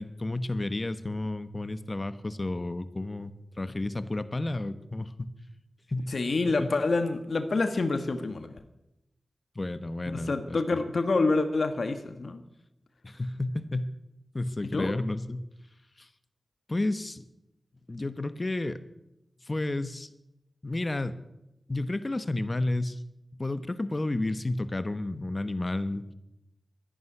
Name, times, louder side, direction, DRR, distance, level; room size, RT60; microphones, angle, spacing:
voice 1, 0.0-5.3 5.9-6.1 6.6-6.7 9.5-10.8 13.0-13.9 14.3-15.4 16.0-16.1 16.7-17.2 17.9-18.8 19.5-20.1 20.6-21.2 21.7-23.0 23.4-26.0, left 2 dB, 35° left, 13 dB, 1.2 m, -31 dB
voice 2, 6.1-8.6 10.1-12.4 14.6-14.9, left 3 dB, 65° left, 9 dB, 1.3 m, -27 dB
13.0 x 11.0 x 9.8 m, 0.90 s
cardioid pair, 55°, 0 cm